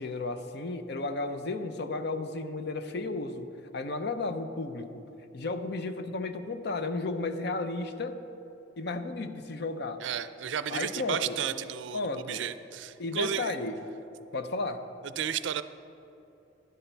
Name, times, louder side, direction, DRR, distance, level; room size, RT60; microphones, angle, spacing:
voice 1, 0.0-5.0 5.3-8.2 8.8-10.0 10.7-11.4 11.9-12.4 13.0-13.8 14.3-14.8, left 3 dB, 60° left, 9 dB, 0.6 m, -33 dB
voice 2, 10.0-13.5 15.0-15.6, right 8 dB, 70° right, 13 dB, 0.4 m, -33 dB
11.0 x 10.5 x 4.5 m, 2.7 s
head